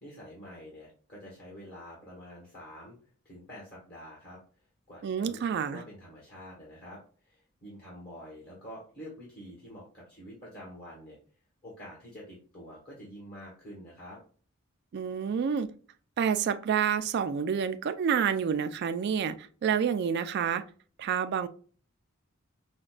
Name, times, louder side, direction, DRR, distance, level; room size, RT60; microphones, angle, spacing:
voice 1, 0.0-3.0 3.2-4.4 4.9-11.2 11.6-14.2, equal, 50° left, -4 dB, 1.3 m, -47 dB
voice 2, 5.0-5.8 14.9-15.7 16.2-20.6 21.0-21.5, right 7 dB, 55° right, 10 dB, 0.3 m, -28 dB
5.0 x 2.2 x 2.3 m, 0.41 s
head